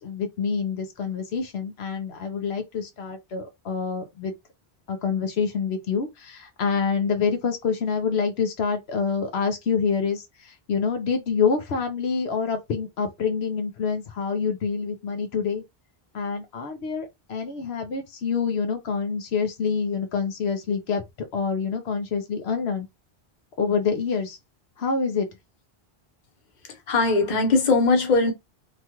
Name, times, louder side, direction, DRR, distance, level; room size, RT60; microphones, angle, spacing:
voice 1, 0.0-4.3 4.9-15.6 16.1-21.0 21.3-22.9 23.6-24.4 24.8-25.3, left 5 dB, 85° left, 1.0 m, -26 dB
voice 2, 26.9-28.3, left 3 dB, 50° left, 0.9 m, -20 dB
3.1 x 2.3 x 2.9 m
omnidirectional pair, 1.1 m